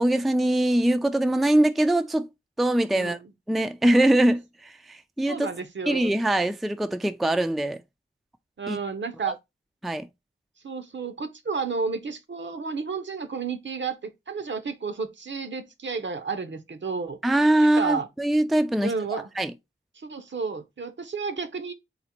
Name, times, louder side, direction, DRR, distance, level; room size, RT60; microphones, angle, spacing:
voice 1, 0.0-2.3 2.6-3.2 3.5-5.5 5.9-7.8 8.7-8.8 9.8-10.1 17.2-18.9 19.4-19.5, right 1 dB, ahead, 0.3 m, -22 dB
voice 2, 2.9-3.3 5.3-6.1 8.6-9.3 10.6-17.2 17.6-18.1 18.8-19.3 20.0-21.7, right 4 dB, 65° right, 0.7 m, -31 dB
4.0 x 2.0 x 4.2 m
wide cardioid pair, 60°, 21 cm